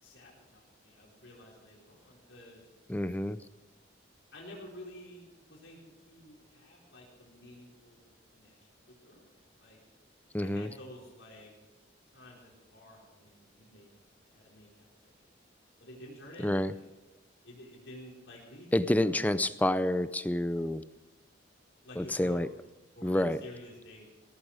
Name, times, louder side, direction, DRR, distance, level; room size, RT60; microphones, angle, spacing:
voice 1, 0.0-2.7 4.3-9.3 9.6-9.8 10.4-11.5 12.1-15.3 15.8-16.9 17.4-19.5 21.8-22.4 22.9-24.0, left 1 dB, 80° left, -4 dB, 5.0 m, -51 dB
voice 2, 2.9-3.4 10.3-10.7 16.4-16.7 18.7-20.8 22.0-22.5 23.0-23.4, left 1 dB, 10° left, 14 dB, 0.5 m, -28 dB
17.5 x 15.0 x 5.0 m, 1.0 s
head